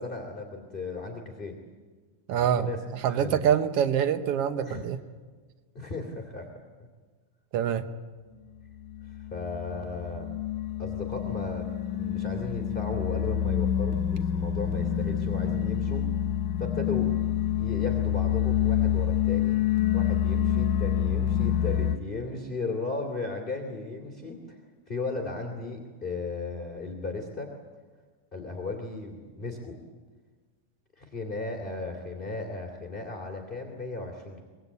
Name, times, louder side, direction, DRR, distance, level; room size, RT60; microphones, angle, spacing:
voice 1, 0.0-1.6 2.3-2.8 3.1-3.4 4.6-4.8 5.7-6.6 9.0-10.3 10.8-16.1 16.6-17.1 17.6-19.6 19.9-24.6 24.9-27.5 28.3-29.8 31.0-34.4, left 3 dB, 20° left, 1 dB, 1.9 m, -36 dB
voice 2, 2.3-2.7 3.0-5.0 7.5-7.9, right 9 dB, 85° right, 9 dB, 1.3 m, -25 dB
sound 1, 8.8-22.0, left 10 dB, 70° left, 2.3 m, -27 dB
24.5 x 22.0 x 8.4 m, 1.4 s
omnidirectional pair, 4.0 m